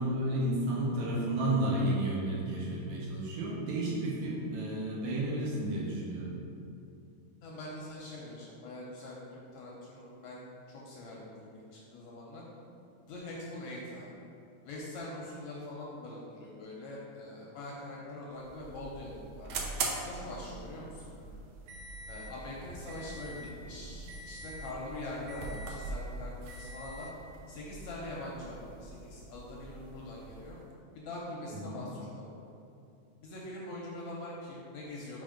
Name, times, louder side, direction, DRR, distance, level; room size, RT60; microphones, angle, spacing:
voice 1, 0.0-6.4 31.5-31.8, right 1 dB, 70° right, -5 dB, 2.0 m, -32 dB
voice 2, 7.4-12.4 13.1-14.1 14.6-19.7 20.1-21.3 22.1-27.1 27.5-30.6 31.0-32.3 33.2-35.2, left 1 dB, 75° left, -4 dB, 1.8 m, -43 dB
sound 1, 18.3-30.7, right 3 dB, 90° right, 1.4 m, -42 dB
5.1 x 3.9 x 5.0 m, 2.6 s
omnidirectional pair, 3.7 m